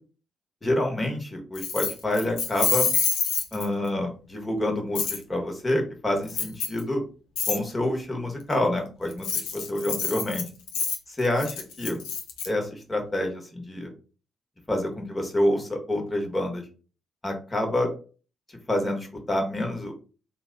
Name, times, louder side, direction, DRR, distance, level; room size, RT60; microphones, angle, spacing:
voice 1, 0.6-2.9 3.5-7.0 7.5-9.3 9.7-10.4 11.2-12.0 12.4-13.9 14.7-16.6 17.2-17.9 18.7-19.9, left 1 dB, 25° left, 2 dB, 1.3 m, -27 dB
Keys jangling, 1.6-3.9 5.0-5.2 6.3-6.8 7.4-7.6 9.1-12.5, left 6 dB, 75° left, 0.6 m, -27 dB
2.8 x 2.3 x 3.8 m, 0.35 s
hypercardioid pair, 40°, 0 cm